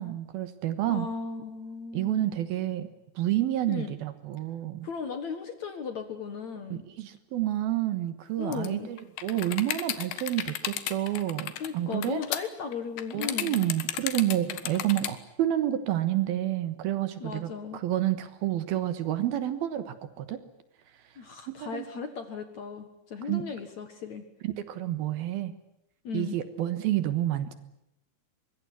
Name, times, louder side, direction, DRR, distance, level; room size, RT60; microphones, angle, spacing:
voice 1, 0.0-1.1 1.9-2.9 3.2-4.9 6.7-12.2 13.1-20.4 21.5-21.9 23.3-23.4 24.4-25.5 26.1-27.5, right 13 dB, 70° right, 12 dB, 2.8 m, -29 dB
voice 2, 0.9-2.4 3.7-4.0 4.8-6.8 8.4-8.9 11.6-13.6 17.2-17.8 21.2-24.2 26.0-26.4, left 5 dB, 55° left, 8 dB, 2.3 m, -36 dB
sound 1, 8.5-8.7 9.0-15.1, left 11 dB, 80° left, 3.6 m, -34 dB
24.5 x 22.0 x 9.9 m, 0.82 s
omnidirectional pair, 5.1 m